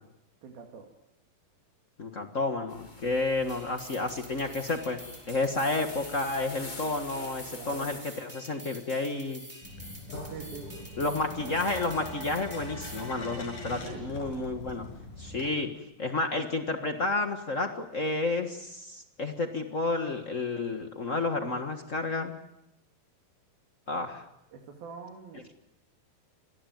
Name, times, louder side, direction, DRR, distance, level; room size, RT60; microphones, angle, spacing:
voice 1, 0.4-0.8 7.5-7.9 10.2-10.7 13.8-14.1 24.5-25.5, right 6 dB, 75° right, 1 dB, 4.3 m, -44 dB
voice 2, 2.0-5.0 5.3-9.4 11.0-14.9 15.2-15.7 16.0-22.4 23.9-24.2, left 2 dB, 85° left, 6 dB, 0.6 m, -31 dB
sound 1, 2.7-8.0, left 2 dB, 30° left, 0.9 m, -46 dB
sound 2, 3.5-13.1, right 1 dB, 10° right, 5.9 m, -48 dB
sound 3, 9.6-15.5, left 1 dB, 60° left, 7.4 m, -41 dB
27.0 x 20.5 x 9.4 m, 0.87 s
omnidirectional pair, 4.3 m